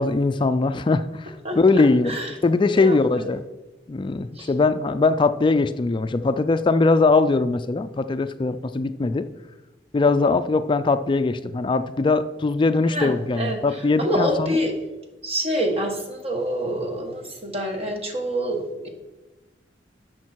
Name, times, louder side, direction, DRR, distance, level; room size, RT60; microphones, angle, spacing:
voice 1, 0.0-3.4 3.9-9.3 9.9-14.6, left 3 dB, 30° left, 11 dB, 0.3 m, -21 dB
voice 2, 2.7-3.3 4.4-4.5 12.9-14.7 15.2-18.9, equal, 35° right, 3 dB, 1.5 m, -27 dB
10.5 x 6.4 x 4.5 m, 1.1 s
head